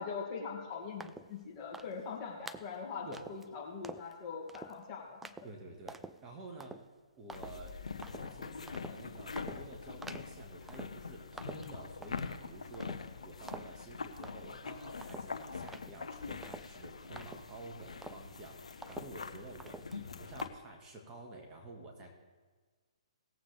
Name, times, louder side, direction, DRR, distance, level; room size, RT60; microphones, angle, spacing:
voice 1, 0.0-5.2, left 5 dB, 30° left, -1 dB, 2.4 m, -42 dB
sound 1, 1.0-1.4 1.7-2.1 2.5-2.8 3.1-3.5 3.8-4.1 4.5-4.8 5.2-5.5 5.9-6.2 6.6-6.9 7.3-7.7 8.0-8.3 8.7-9.0 9.4-9.7 10.0-10.4 10.7-11.1 11.4-12.4 12.7-13.2 13.5-13.8 14.2-14.6 15.0-17.7 18.0-18.4 18.8-19.3 19.6-20.0 20.4-20.5, right 3 dB, 5° right, 0.3 m, -48 dB
voice 2, 5.4-6.8 7.2-7.7 8.2-22.1, right 2 dB, 20° right, 0 dB, 1.8 m, -50 dB
sound 2, 7.3-20.5, left 5 dB, 80° left, 0.8 m, -44 dB
19.0 x 7.8 x 3.5 m, 1.4 s
hypercardioid pair, 140°, 3 cm